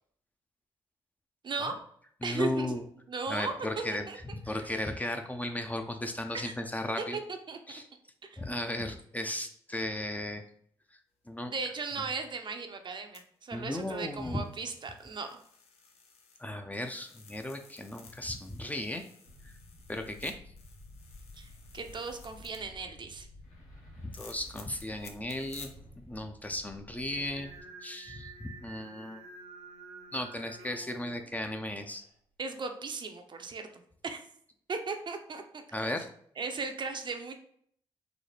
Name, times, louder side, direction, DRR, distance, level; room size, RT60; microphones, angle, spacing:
voice 1, 1.4-1.7 2.2-2.7 3.1-4.2 6.3-6.5 7.0-7.1 7.5-7.8 8.3-8.4 11.4-15.3 21.3-23.3 32.4-34.2 34.7-35.9 36.4-37.4, right 4 dB, 45° right, 5 dB, 0.6 m, -37 dB
voice 2, 2.2-2.8 3.3-4.1 4.3-7.2 7.7-7.8 8.4-10.4 11.3-11.5 13.5-14.4 16.4-19.0 19.4-19.5 19.9-20.4 24.0-25.7 26.1-27.5 27.8-29.2 30.1-32.0 35.7-36.1, left 1 dB, 15° left, 5 dB, 0.5 m, -35 dB
sound 1, 13.1-16.4 16.8-22.6 24.1-25.7 26.2-26.3, left 5 dB, 70° left, 0.6 m, -55 dB
sound 2, 19.2-27.6, left 1 dB, 90° left, 1.1 m, -52 dB
Singing, 27.0-32.1, right 3 dB, 75° right, 1.0 m, -50 dB
3.9 x 2.1 x 3.3 m, 0.63 s
supercardioid pair, 55°, 11 cm